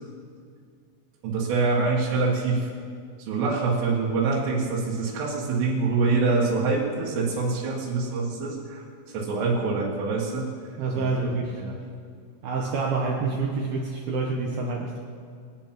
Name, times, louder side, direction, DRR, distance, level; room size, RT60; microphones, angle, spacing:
voice 1, 1.2-2.7 3.2-8.8 9.1-10.5 10.9-11.8, right 4 dB, 90° right, -7 dB, 4.6 m, -25 dB
voice 2, 10.8-11.6 12.4-15.0, right 4 dB, 70° right, 0 dB, 2.4 m, -27 dB
24.0 x 8.8 x 6.0 m, 2.2 s
omnidirectional pair, 5.6 m